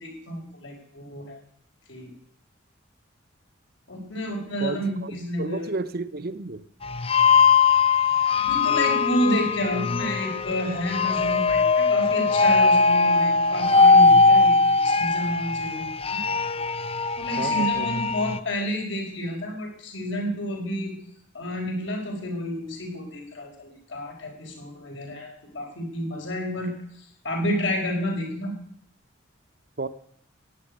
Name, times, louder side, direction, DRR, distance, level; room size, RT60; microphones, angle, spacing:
voice 1, 0.0-1.4 1.9-2.1 3.9-5.7 8.3-14.6 14.8-16.2 17.2-20.9 21.3-26.7 27.2-28.5, equal, 65° left, 4.9 m, -30 dB
voice 2, 4.6-6.6 17.4-18.0 29.8-29.9, right 3 dB, 50° right, 0.9 m, -32 dB
sound 1, 6.8-18.4, left 4 dB, 30° left, 0.6 m, -20 dB
14.5 x 10.0 x 9.7 m
head